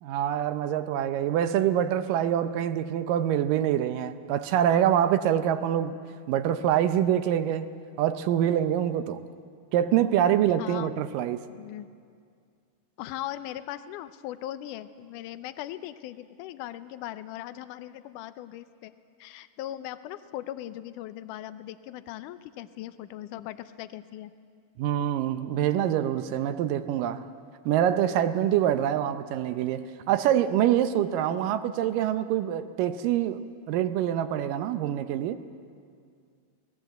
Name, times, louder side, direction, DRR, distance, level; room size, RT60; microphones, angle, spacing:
voice 1, 0.0-6.0 6.3-7.7 8.0-9.2 9.7-11.4 24.8-27.3 27.7-35.4, right 10 dB, 85° right, 10 dB, 2.4 m, -25 dB
voice 2, 10.6-10.9 11.5-11.9 13.0-18.9 19.2-24.3, left 13 dB, 75° left, 12 dB, 2.2 m, -39 dB
28.0 x 18.5 x 7.9 m, 2.2 s
omnidirectional pair, 3.9 m